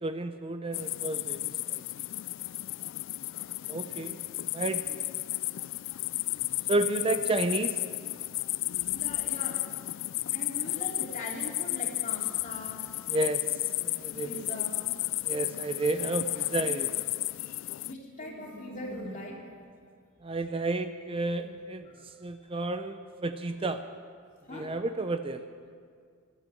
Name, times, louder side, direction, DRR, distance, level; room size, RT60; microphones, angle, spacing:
voice 1, 0.0-1.4 1.7-1.8 3.7-4.1 4.5-5.0 6.7-7.8 13.1-13.4 13.8-14.3 15.3-16.9 20.2-21.8 22.2-23.8 24.5-25.4, right 2 dB, 25° right, 9 dB, 0.5 m, -31 dB
sound 1, 0.7-17.9, left 18 dB, 65° left, 0.3 m, -33 dB
voice 2, 3.6-4.1 8.2-8.4 8.9-9.8 10.3-12.8 14.1-14.8 17.4-17.5 17.8-19.4 21.3-22.0 23.4-23.5 24.5-24.7, left 1 dB, 40° left, -2 dB, 3.0 m, -41 dB
14.5 x 12.0 x 7.7 m, 2.1 s
head